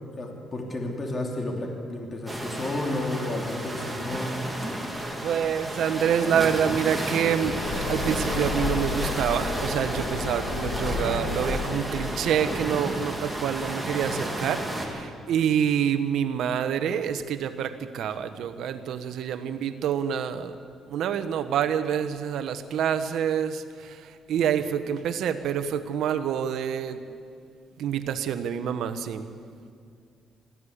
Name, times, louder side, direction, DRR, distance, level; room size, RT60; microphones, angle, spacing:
voice 1, 0.2-4.4, left 2 dB, 35° left, 1 dB, 3.1 m, -31 dB
sound 1, 2.3-14.9, right 1 dB, 5° right, 3.5 m, -32 dB
voice 2, 5.2-20.6 20.9-27.0 27.8-29.3, right 8 dB, 80° right, 11 dB, 1.1 m, -27 dB
sound 2, 5.3-14.1, left 4 dB, 75° left, 3.0 m, -34 dB
21.5 x 15.0 x 8.4 m, 2.3 s
cardioid pair, 90°, 0 cm